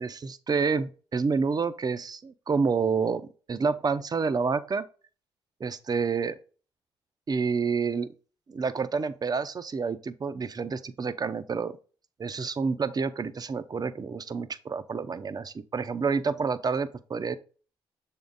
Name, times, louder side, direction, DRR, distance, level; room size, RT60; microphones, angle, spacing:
voice 1, 0.0-4.8 5.6-6.4 7.3-8.1 8.5-11.8 12.2-17.4, right 5 dB, 40° right, 0.6 m, -28 dB
6.9 x 3.7 x 3.9 m
supercardioid pair, 60°, 10 cm